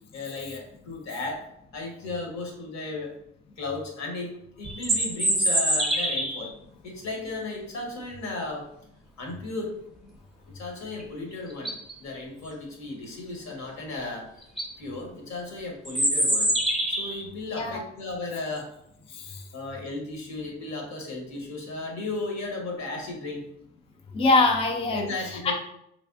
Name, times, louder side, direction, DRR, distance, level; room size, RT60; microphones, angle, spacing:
voice 1, 0.1-1.5 1.7-3.1 3.6-6.5 6.8-8.7 9.2-9.7 10.5-11.7 12.0-14.4 14.8-16.5 16.9-18.7 19.5-23.5 24.9-25.5, left 3 dB, 65° left, 0 dB, 1.2 m, -35 dB
sound 1, 4.6-6.5 11.0-11.1 11.5-11.9 14.0-14.1 14.4-14.7 15.8-17.2, right 1 dB, ahead, 0.7 m, -25 dB
voice 2, 17.5-17.8 19.1-19.4 24.1-25.5, left 3 dB, 20° left, 3 dB, 0.4 m, -24 dB
3.3 x 3.1 x 2.6 m, 0.75 s
cardioid pair, 90°, 30 cm